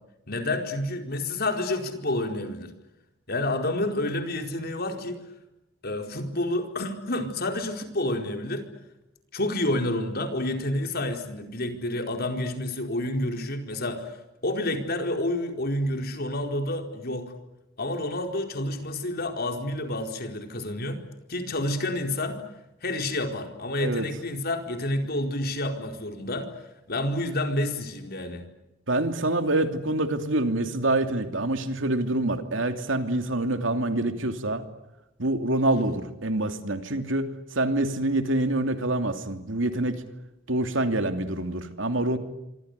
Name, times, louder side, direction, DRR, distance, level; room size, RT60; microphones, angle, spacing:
voice 1, 0.3-2.7 3.3-5.2 5.8-8.7 9.3-17.3 17.8-21.0 21.3-22.4 22.8-26.5 26.9-28.4, left 1 dB, 55° left, 5 dB, 4.5 m, -29 dB
voice 2, 28.9-34.6 35.2-40.0 40.5-42.2, right 2 dB, 75° right, 7 dB, 2.9 m, -26 dB
26.5 x 26.0 x 8.3 m, 0.90 s
head